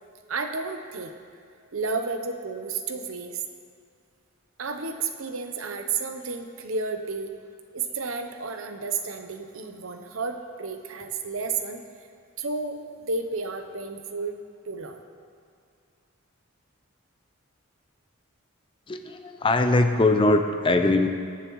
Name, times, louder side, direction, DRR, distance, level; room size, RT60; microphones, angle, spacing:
voice 1, 0.3-1.1 1.7-3.4 4.6-7.3 7.7-12.1 12.4-14.4 14.6-15.0, right 4 dB, 75° right, 6 dB, 0.8 m, -32 dB
voice 2, 18.9-21.1, left 2 dB, 25° left, 6 dB, 0.6 m, -21 dB
21.0 x 7.0 x 3.1 m, 2.3 s
head